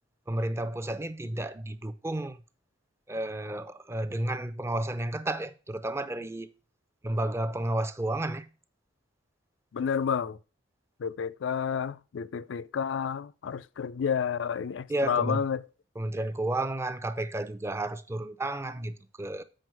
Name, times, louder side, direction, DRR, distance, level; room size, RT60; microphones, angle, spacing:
voice 1, 0.3-2.4 3.1-6.5 7.0-8.5 14.9-15.4 16.0-19.4, right 1 dB, 15° right, 0.5 m, -32 dB
voice 2, 9.7-10.4 11.0-15.6, left 7 dB, 70° left, 0.4 m, -30 dB
7.8 x 5.3 x 4.6 m
head